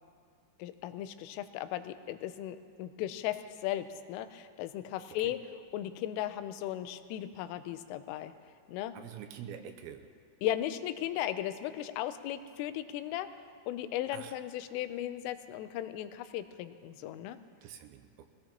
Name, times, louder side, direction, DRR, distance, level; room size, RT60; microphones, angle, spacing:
voice 1, 0.6-5.4 5.7-8.3 8.7-8.9 10.4-13.3 13.7-17.4, left 12 dB, 85° left, 10 dB, 3.2 m, -36 dB
voice 2, 8.9-10.1 14.1-14.3 17.6-18.3, right 9 dB, 80° right, 7 dB, 2.8 m, -46 dB
23.5 x 17.5 x 3.0 m, 2.1 s
omnidirectional pair, 5.6 m